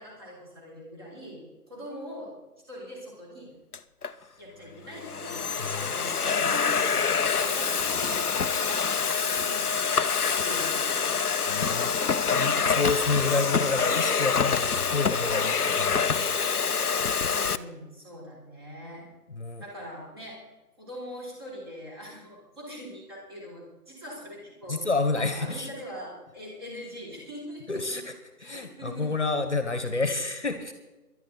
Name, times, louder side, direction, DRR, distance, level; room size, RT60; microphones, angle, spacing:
voice 1, 0.0-2.3 2.7-3.5 4.4-9.7 10.4-11.2 17.3-19.1 19.6-20.4 20.8-24.8 25.2-27.8 28.4-29.1, equal, 15° right, -4 dB, 3.7 m, -42 dB
Domestic sounds home sounds, 3.7-4.1 4.8-17.6, left 6 dB, 70° left, 0.9 m, -26 dB
voice 2, 5.6-5.9 11.5-11.9 12.3-16.3 19.3-19.6 24.7-25.7 27.7-28.1 28.4-30.7, left 3 dB, 45° left, 8 dB, 1.6 m, -29 dB
19.5 x 12.0 x 4.1 m, 1.1 s
figure-of-eight pair, 175°, 47 cm